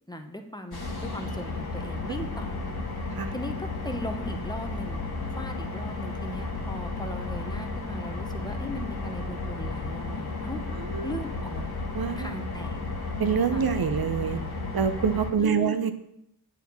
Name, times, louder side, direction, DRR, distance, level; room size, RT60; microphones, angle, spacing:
voice 1, 0.1-2.6 3.3-5.0 5.4-10.6 11.0-11.7 12.2-12.8 13.5-13.7 15.4-15.8, left 1 dB, 10° left, 5 dB, 1.0 m, -38 dB
sound 1, 0.7-15.3, left 3 dB, 75° left, 1.9 m, -33 dB
voice 2, 10.8-11.1 11.9-12.3 13.2-14.4 14.7-15.9, right 7 dB, 70° right, 9 dB, 0.8 m, -26 dB
8.2 x 4.7 x 6.9 m, 0.80 s
wide cardioid pair, 65°, 38 cm